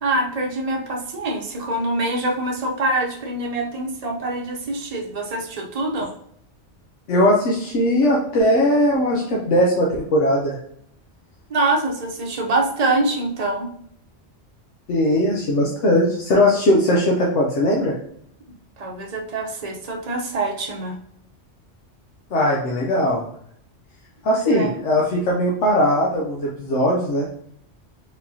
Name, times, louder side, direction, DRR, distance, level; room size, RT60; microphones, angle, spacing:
voice 1, 0.0-6.1 11.5-13.7 18.8-21.0 24.5-24.8, right 2 dB, 40° right, 0 dB, 0.8 m, -24 dB
voice 2, 7.1-10.5 14.9-17.9 22.3-23.2 24.2-27.3, left 1 dB, 85° left, -3 dB, 1.2 m, -19 dB
4.8 x 3.5 x 2.7 m, 0.68 s
omnidirectional pair, 1.2 m